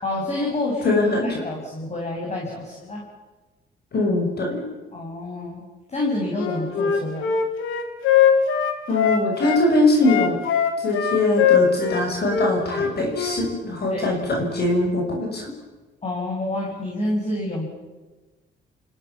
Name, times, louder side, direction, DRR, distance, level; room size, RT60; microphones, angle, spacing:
voice 1, 0.0-3.0 4.9-5.6 5.9-7.3 13.9-14.1 16.0-17.7, left 1 dB, 35° left, -1 dB, 7.0 m, -28 dB
voice 2, 0.8-1.3 3.9-4.6 8.9-10.4 10.8-15.5, left 2 dB, 55° left, 1 dB, 6.4 m, -22 dB
Wind instrument woodwind instrument, 6.4-9.6 10.0-13.4, left 8 dB, 80° left, 2.9 m, -21 dB
29.5 x 16.5 x 7.3 m, 1.2 s
cardioid pair, 90°, 20 cm